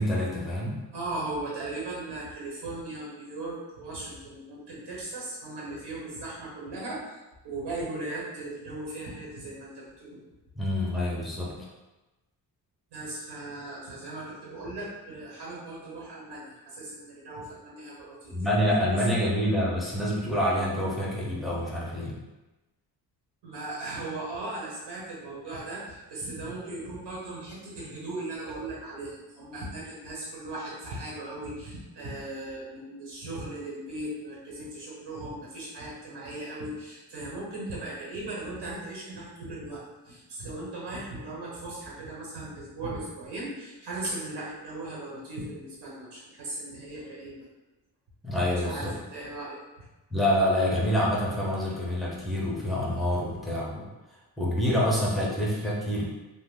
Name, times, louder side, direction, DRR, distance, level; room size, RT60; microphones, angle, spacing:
voice 1, 0.0-0.8 10.6-11.7 18.3-22.1 48.2-48.9 50.1-53.8 54.4-56.0, equal, ahead, -5 dB, 0.6 m, -27 dB
voice 2, 0.9-7.2 7.4-10.2 12.9-18.4 18.9-19.1 23.4-47.4 48.6-49.8, right 2 dB, 80° right, -4 dB, 1.2 m, -38 dB
3.1 x 2.1 x 3.6 m, 1.1 s
wide cardioid pair, 165°, 40 cm